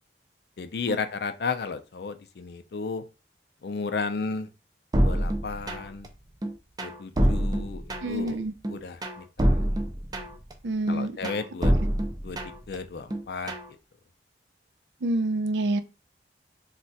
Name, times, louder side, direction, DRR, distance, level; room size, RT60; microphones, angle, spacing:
voice 1, 0.6-3.0 3.6-4.5 5.0-6.1 6.8-8.4 8.7-9.5 10.9-11.7 12.2-12.4 12.7-13.5, left 4 dB, 65° left, 0.4 m, -33 dB
sound 1, 4.9-6.1 6.4-8.3 8.6-10.5 10.9-12.8 13.1-13.7, equal, 20° right, 0.4 m, -26 dB
voice 2, 8.0-8.5 10.6-11.2 15.0-15.8, right 2 dB, 85° right, 0.4 m, -27 dB
2.4 x 2.2 x 3.9 m
head